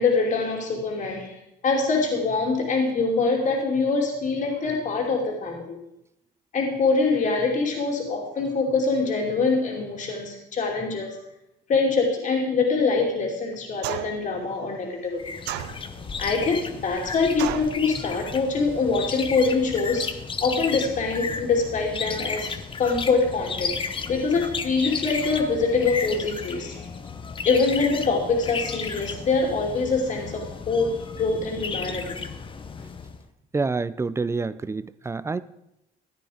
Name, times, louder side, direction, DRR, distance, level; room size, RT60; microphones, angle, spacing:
voice 1, 0.0-1.4 1.6-5.8 6.5-11.2 11.7-15.2 16.2-20.1 20.4-22.5 22.8-23.8 24.1-26.8 27.4-32.2, left 4 dB, 45° left, 0 dB, 2.7 m, -24 dB
sound 1, 13.8-14.3 15.5-16.1 17.4-17.8, right 13 dB, 90° right, 0.7 m, -32 dB
sound 2, 15.2-33.2, left 5 dB, 30° left, 0.9 m, -34 dB
voice 2, 33.5-35.4, right 4 dB, 15° right, 16 dB, 0.5 m, -27 dB
14.5 x 9.6 x 5.0 m, 0.85 s
cardioid pair, 110°, 17 cm